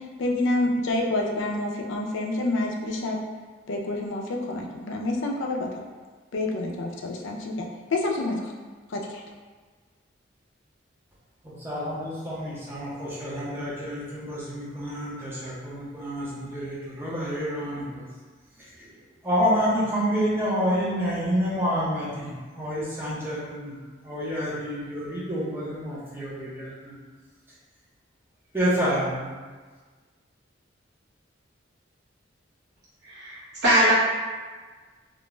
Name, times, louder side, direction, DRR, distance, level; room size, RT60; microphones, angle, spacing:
voice 1, 0.0-3.2 3.7-5.8 6.3-8.5 8.9-9.2, left 2 dB, 85° left, 1 dB, 0.4 m, -28 dB
voice 2, 11.4-18.1 18.6-18.9 19.2-23.8 24.0-26.9 28.5-29.3, equal, 10° right, -8 dB, 0.7 m, -28 dB
voice 3, 33.0-33.9, right 1 dB, 60° right, -10 dB, 0.9 m, -21 dB
2.4 x 2.2 x 3.0 m, 1.4 s
head